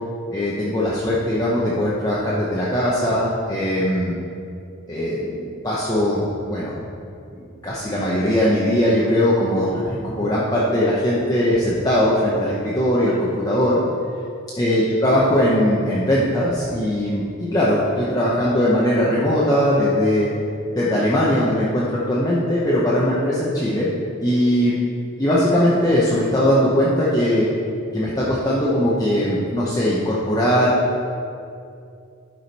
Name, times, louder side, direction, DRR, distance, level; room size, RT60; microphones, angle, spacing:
voice 1, 0.3-4.1 4.9-6.2 6.4-6.7 7.3-13.8 14.6-20.3 20.7-23.9 24.2-24.8 25.2-27.5 27.9-30.7, equal, 15° left, -7 dB, 0.8 m, -20 dB
12.0 x 5.0 x 4.2 m, 2.5 s
head